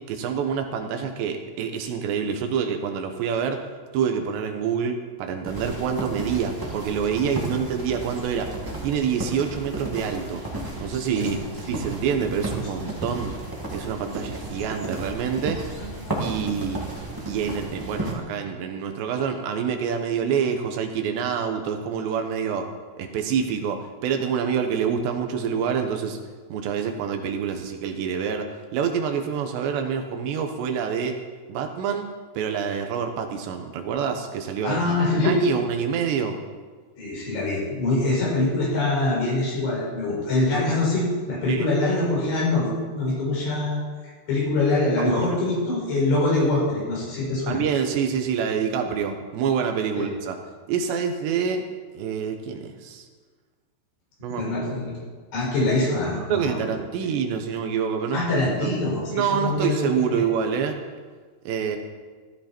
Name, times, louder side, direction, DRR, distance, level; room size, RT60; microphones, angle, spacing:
voice 1, 0.1-3.6 3.9-10.4 10.8-11.4 11.7-13.3 13.7-15.6 16.2-16.9 17.3-22.7 23.0-26.2 26.5-31.2 31.5-32.1 32.4-34.8 35.1-36.4 41.5-41.7 45.0-45.3 47.5-50.4 50.7-51.7 51.9-53.1 54.2-54.4 56.3-58.7 59.1-60.7 61.5-61.8, right 7 dB, 75° right, 5 dB, 3.0 m, -27 dB
sound 1, 5.4-18.1, right 1 dB, 10° right, 0.9 m, -33 dB
voice 2, 15.8-16.4 34.6-35.4 37.0-47.6 50.0-50.1 54.3-54.9 55.3-56.7 58.1-60.2, left 2 dB, 80° left, -5 dB, 8.1 m, -24 dB
15.5 x 14.0 x 4.4 m, 1.5 s
omnidirectional pair, 5.3 m